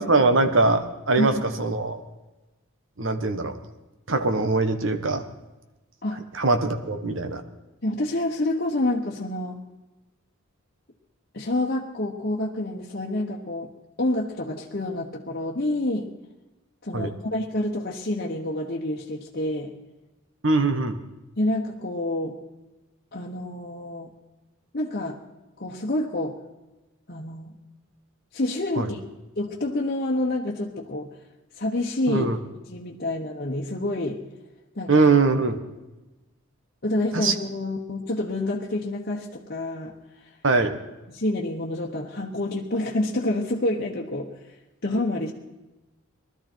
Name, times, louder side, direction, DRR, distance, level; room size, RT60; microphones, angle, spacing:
voice 1, 0.0-2.0 3.0-3.5 4.1-5.2 6.1-7.4 16.9-17.1 20.4-21.0 28.8-28.9 32.1-32.4 34.9-35.6 37.1-37.3 40.4-40.8, right 3 dB, 65° right, 8 dB, 1.3 m, -22 dB
voice 2, 7.8-9.6 11.3-13.7 14.0-16.1 16.8-19.7 21.4-22.4 23.1-24.1 24.7-25.2 25.6-26.4 27.1-27.5 28.3-29.0 29.4-31.1 31.6-32.3 32.7-34.2 34.8-35.0 36.8-39.9 41.1-44.3 44.8-45.3, left 1 dB, 45° left, -2 dB, 1.1 m, -28 dB
20.0 x 13.0 x 4.5 m, 1.1 s
head